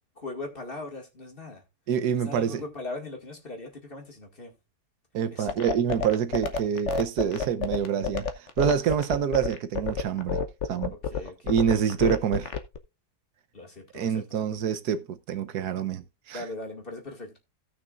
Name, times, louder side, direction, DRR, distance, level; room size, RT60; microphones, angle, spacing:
voice 1, 0.2-1.6 2.1-4.5 5.3-5.6 11.1-11.6 13.5-14.4 16.3-17.4, left 2 dB, 35° left, 2.3 m, -39 dB
voice 2, 1.9-2.6 5.1-8.3 8.6-10.4 10.7-10.9 11.4-12.5 13.9-16.4, right 8 dB, 80° right, 1.4 m, -26 dB
sound 1, 5.5-12.8, left 5 dB, 50° left, 1.1 m, -28 dB
17.0 x 6.1 x 2.5 m
omnidirectional pair, 1.7 m